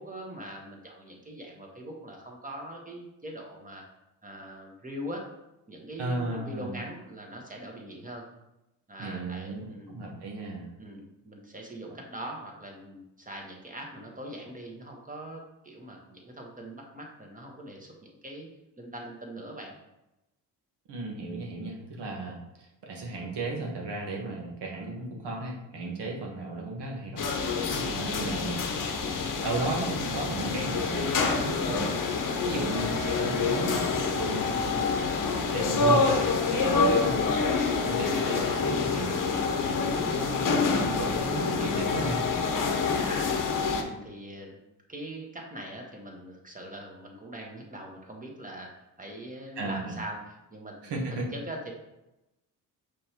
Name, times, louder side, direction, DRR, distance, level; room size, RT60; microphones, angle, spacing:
voice 1, 0.0-3.8 4.2-5.3 5.7-8.2 8.9-9.9 10.8-18.5 18.8-19.7 43.0-43.3 43.7-44.6 44.9-50.9 51.3-51.7, right 1 dB, 20° right, 0 dB, 1.4 m, -42 dB
voice 2, 6.0-6.8 9.0-10.7 20.9-28.6 29.0-31.9 32.5-34.8 35.2-39.2 39.7-42.3 49.6-49.9 50.8-51.3, right 2 dB, 65° right, -1 dB, 1.4 m, -35 dB
sound 1, 27.2-43.8, left 4 dB, 45° left, 0.9 m, -27 dB
5.1 x 3.4 x 3.0 m, 0.92 s
supercardioid pair, 55°, 44 cm